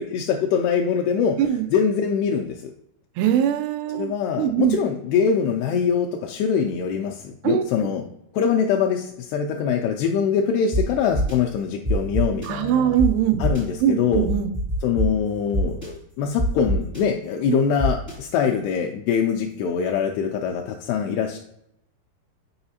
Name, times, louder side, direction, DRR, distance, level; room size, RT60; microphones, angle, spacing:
voice 1, 0.1-2.7 3.9-8.1 8.3-13.0 13.4-14.3 14.8-21.4, left 7 dB, 85° left, 2 dB, 2.4 m, -23 dB
voice 2, 3.2-4.1 4.4-4.8 7.4-7.9 12.5-13.4 13.8-14.5, right 9 dB, 80° right, 9 dB, 2.5 m, -21 dB
sound 1, 10.7-10.8 11.1-11.3 11.8-12.5 13.0-13.1 13.4-13.6 14.1-15.1 15.5-15.9 16.4-17.0 17.8-18.1, left 1 dB, 20° right, 0.4 m, -23 dB
8.6 x 4.9 x 2.7 m, 0.76 s
omnidirectional pair, 5.1 m